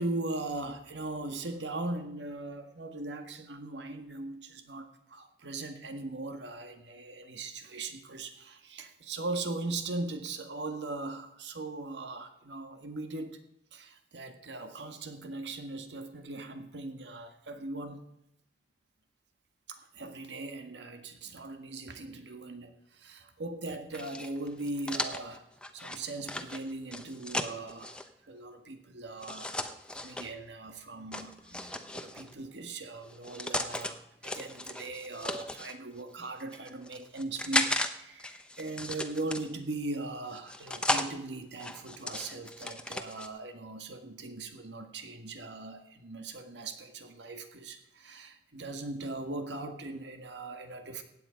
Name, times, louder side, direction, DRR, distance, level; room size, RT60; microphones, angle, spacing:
voice 1, 0.0-13.4 13.7-18.0 19.7-25.5 25.7-27.9 28.2-51.0, right 2 dB, 85° right, 7 dB, 1.7 m, -39 dB
sound 1, 23.9-28.1 29.2-30.3 31.1-32.3 33.0-33.9 34.2-35.7 36.4-37.9 38.2-39.7 40.3-41.1 41.6-43.3, left 1 dB, 5° left, 0.8 m, -35 dB
15.5 x 9.3 x 5.2 m, 0.83 s
head